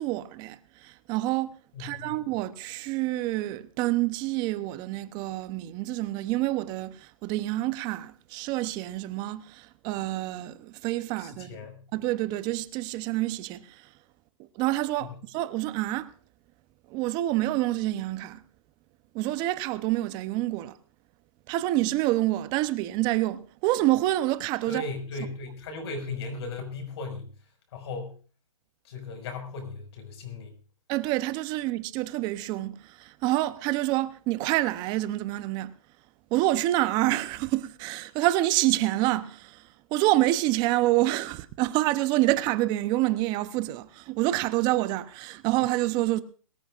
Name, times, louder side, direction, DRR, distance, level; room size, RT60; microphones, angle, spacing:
voice 1, 0.0-11.6 11.9-13.9 14.6-16.1 16.9-18.4 19.1-20.8 21.5-24.8 30.9-35.7 36.3-46.2, right 16 dB, 25° right, 0.8 m, -27 dB
voice 2, 1.7-2.2 11.2-11.8 15.0-15.1 24.7-27.3 27.7-28.1 28.8-30.5, left 3 dB, 50° left, 5.5 m, -37 dB
22.5 x 13.5 x 2.5 m
hypercardioid pair, 145°, 18 cm